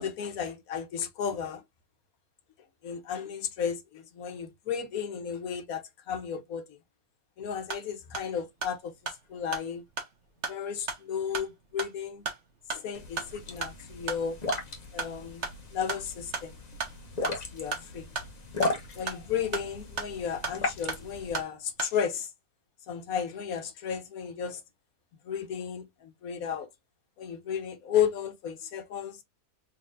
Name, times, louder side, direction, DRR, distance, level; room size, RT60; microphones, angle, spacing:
voice 1, 0.0-1.6 2.8-6.6 7.4-8.9 9.3-9.8 10.5-12.2 12.7-14.4 14.9-15.5 15.7-16.5 17.2-18.1 18.9-22.3 22.9-24.6 25.2-26.7 27.2-29.2, left 8 dB, 65° left, 1.2 m, -33 dB
sound 1, 7.5-22.0, right 4 dB, 45° right, 1.4 m, -39 dB
sound 2, 12.9-21.4, left 2 dB, 35° left, 0.8 m, -37 dB
4.0 x 3.8 x 2.6 m
omnidirectional pair, 1.8 m